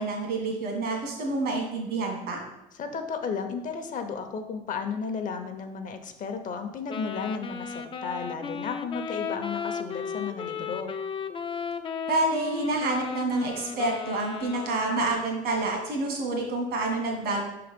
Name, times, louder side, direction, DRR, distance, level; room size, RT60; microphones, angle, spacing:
voice 1, 0.0-2.4 12.1-17.5, right 2 dB, 75° right, 1 dB, 1.8 m, -28 dB
voice 2, 2.7-10.9, left 5 dB, 50° left, 7 dB, 0.7 m, -34 dB
Wind instrument woodwind instrument, 6.9-15.4, left 6 dB, 30° left, 0.4 m, -35 dB
5.4 x 3.9 x 5.2 m, 0.90 s
cardioid pair, 110°, 17 cm